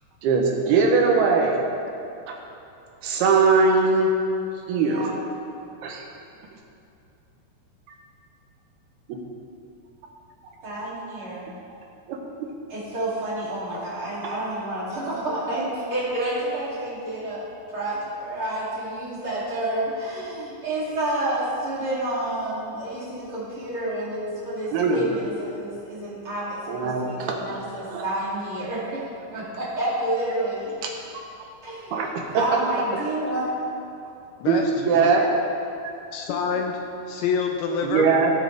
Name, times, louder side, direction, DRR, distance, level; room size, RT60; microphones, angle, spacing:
voice 1, 0.2-1.6 2.3-2.4 3.0-4.1 4.7-5.1 5.8-6.0 9.1-9.2 12.1-12.2 13.7-13.8 14.2-14.3 24.7-25.0 26.7-28.0 30.8-30.9 31.9-32.1 32.3-32.4 32.9-33.0 34.5-35.3 37.8-38.3, right 4 dB, 75° right, 1 dB, 2.8 m, -21 dB
voice 2, 4.8-5.1 10.6-11.5 12.7-17.4 17.7-29.0 29.3-30.7 31.6-33.7, right 1 dB, 35° right, -9 dB, 3.4 m, -29 dB
voice 3, 36.1-36.8 37.1-38.1, left 6 dB, 80° left, 3 dB, 2.4 m, -26 dB
17.5 x 8.4 x 3.5 m, 2.7 s
omnidirectional pair, 4.7 m